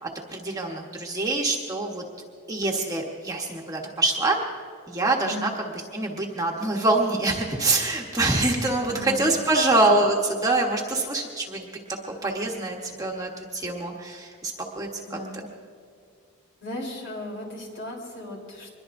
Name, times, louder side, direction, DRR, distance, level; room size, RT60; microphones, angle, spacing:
voice 1, 0.0-2.0 2.5-4.4 4.9-5.5 5.9-11.7 12.2-15.2, right 2 dB, 15° right, 0 dB, 1.2 m, -25 dB
voice 2, 8.8-9.2 15.1-15.4 16.6-18.7, left 1 dB, 55° left, -1 dB, 3.6 m, -36 dB
24.5 x 21.5 x 2.6 m, 2.2 s
head